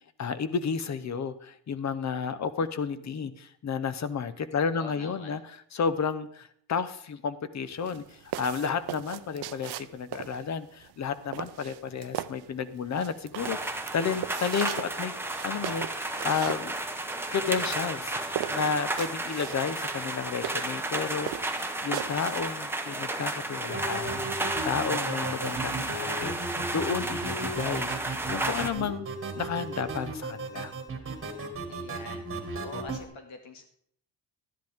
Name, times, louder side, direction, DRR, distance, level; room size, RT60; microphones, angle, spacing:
voice 1, 0.2-5.4 5.7-8.0 8.4-15.1 15.4-16.8 17.3-21.3 21.8-29.1 29.3-30.7, left 6 dB, 40° left, 14 dB, 0.8 m, -32 dB
voice 2, 4.7-5.4 31.7-32.2 32.6-33.6, left 3 dB, 85° left, 5 dB, 2.2 m, -44 dB
sound 1, 7.7-22.4, right 13 dB, 60° right, 0.6 m, -39 dB
sound 2, 13.4-28.7, right 2 dB, 5° right, 0.8 m, -33 dB
sound 3, 23.7-33.1, right 3 dB, 30° right, 1.7 m, -36 dB
12.0 x 10.5 x 3.6 m, 0.65 s
cardioid pair, 140°, 45 cm